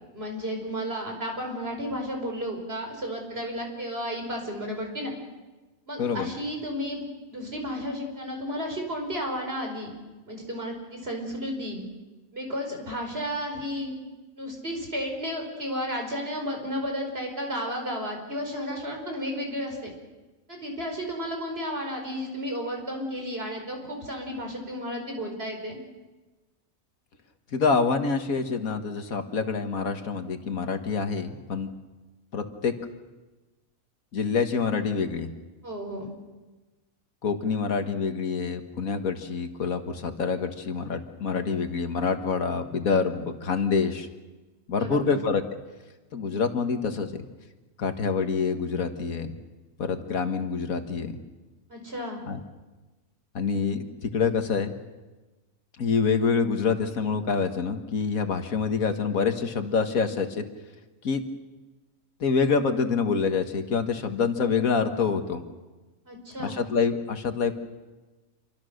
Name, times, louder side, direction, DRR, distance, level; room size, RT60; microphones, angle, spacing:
voice 1, 0.1-5.1 5.9-7.0 7.3-9.9 10.2-11.8 12.3-13.9 14.4-19.9 20.5-25.8 35.6-36.1 44.8-45.2 51.7-52.2 66.0-66.6, equal, 45° right, 2 dB, 5.0 m, -33 dB
voice 2, 27.5-31.7 32.3-32.7 34.1-35.3 37.2-44.1 44.7-45.4 46.1-47.2 47.8-49.3 49.8-51.2 52.3-52.4 53.3-54.7 55.8-60.4 61.0-61.2 62.2-65.4 66.4-67.5, left 5 dB, 80° left, 7 dB, 2.0 m, -26 dB
27.5 x 24.0 x 6.6 m, 1.2 s
omnidirectional pair, 1.5 m